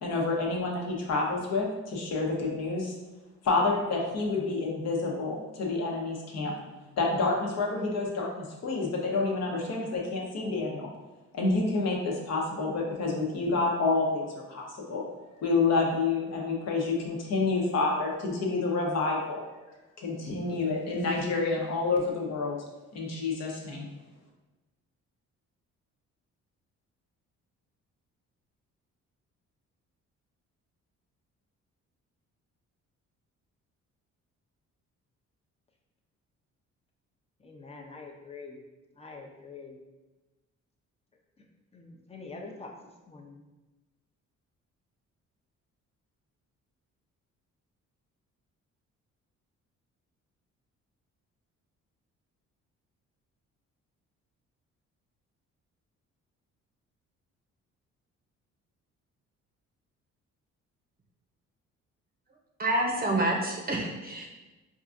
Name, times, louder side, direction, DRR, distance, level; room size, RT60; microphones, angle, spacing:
voice 1, 0.0-2.9 3.4-6.5 7.0-10.9 11.3-15.1 15.4-19.4 20.0-22.6 22.9-23.9, left 3 dB, 60° left, -1 dB, 0.9 m, -28 dB
voice 2, 37.4-38.6 39.0-39.8 41.7-42.7 43.1-43.4, left 3 dB, 20° left, 0 dB, 0.6 m, -45 dB
voice 3, 62.6-64.3, right 1 dB, 30° right, 0 dB, 0.7 m, -28 dB
4.6 x 2.4 x 2.5 m, 1.1 s
cardioid pair, 90°, 30 cm